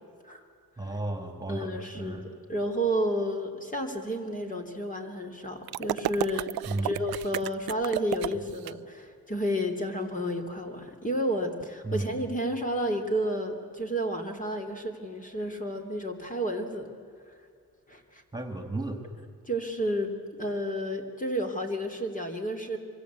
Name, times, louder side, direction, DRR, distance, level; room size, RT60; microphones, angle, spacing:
voice 1, 0.8-2.2 6.6-7.0 11.8-12.2 18.3-19.0, right 2 dB, 10° right, 5 dB, 3.0 m, -34 dB
voice 2, 1.5-2.2 2.5-6.5 6.8-16.9 17.9-18.2 19.4-22.8, equal, 20° left, 3 dB, 3.1 m, -31 dB
sound 1, 5.7-8.7, right 15 dB, 75° right, 0.6 m, -32 dB
26.5 x 23.5 x 8.3 m, 2.2 s
cardioid pair, 95°, 37 cm